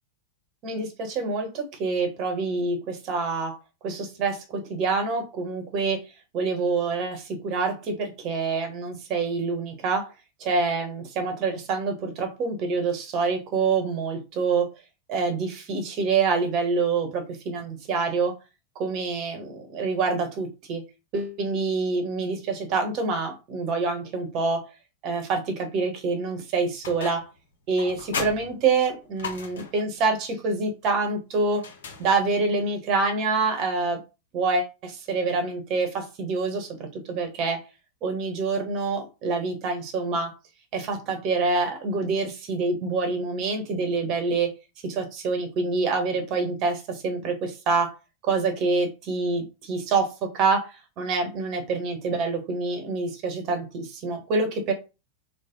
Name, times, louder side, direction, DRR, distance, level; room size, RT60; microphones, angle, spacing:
voice 1, 0.6-3.5 3.8-6.0 6.3-10.1 10.4-14.7 15.1-18.3 18.7-20.8 21.1-24.6 25.0-27.3 27.7-31.6 32.0-34.0 34.3-37.6 38.0-40.3 40.7-44.5 44.8-48.0 48.2-54.7, right 4 dB, 40° right, 4 dB, 1.0 m, -26 dB
sound 1, 26.8-27.4 27.8-29.9 31.5-32.5, left 5 dB, 60° left, 0.7 m, -36 dB
3.3 x 2.0 x 3.7 m, 0.29 s
figure-of-eight pair, 90°, 0 cm